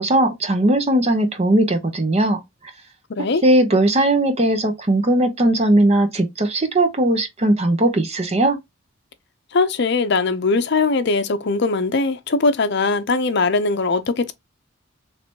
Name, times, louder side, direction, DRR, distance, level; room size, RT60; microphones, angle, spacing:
voice 1, 0.0-2.4 3.4-8.6, right 1 dB, 30° right, 0.7 m, -18 dB
voice 2, 3.1-3.4 9.5-14.3, left 3 dB, 55° left, 0.6 m, -20 dB
3.3 x 2.8 x 4.4 m
head